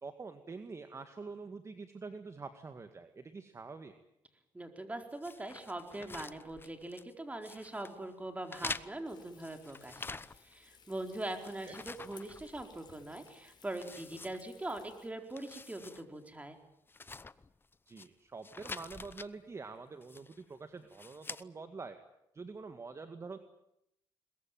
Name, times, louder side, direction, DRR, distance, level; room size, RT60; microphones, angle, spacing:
voice 1, 0.0-3.9 11.6-11.8 17.9-22.0 22.3-23.4, right 4 dB, 30° right, 8 dB, 2.0 m, -46 dB
voice 2, 4.5-16.6, right 1 dB, 15° right, 5 dB, 4.3 m, -42 dB
sound 1, 5.2-7.1 7.4-8.0 8.5-10.6 11.0-12.9 13.2-13.3 13.7-14.9 15.2-16.0 16.3-16.4 16.9-18.1 18.4-19.3 20.0-20.4 20.9-21.4, left 3 dB, 25° left, 0.9 m, -46 dB
Frying (food), 9.0-15.1, left 6 dB, 50° left, 5.3 m, -61 dB
22.0 x 21.5 x 9.3 m, 0.81 s
cardioid pair, 85°, 9 cm